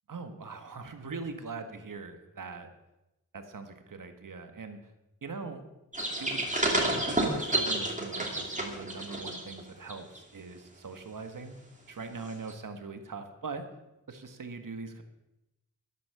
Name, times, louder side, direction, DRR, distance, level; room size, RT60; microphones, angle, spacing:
voice 1, 0.1-2.7 3.3-4.8 5.2-5.6 6.2-6.4 6.9-11.5 11.9-13.7 14.1-15.0, right 4 dB, 75° right, 7 dB, 1.6 m, -41 dB
sound 1, 5.9-9.6 9.9-10.2 12.5-12.6, right 1 dB, 25° right, 2.9 m, -30 dB
12.5 x 10.5 x 6.9 m, 0.92 s
wide cardioid pair, 80°, 32 cm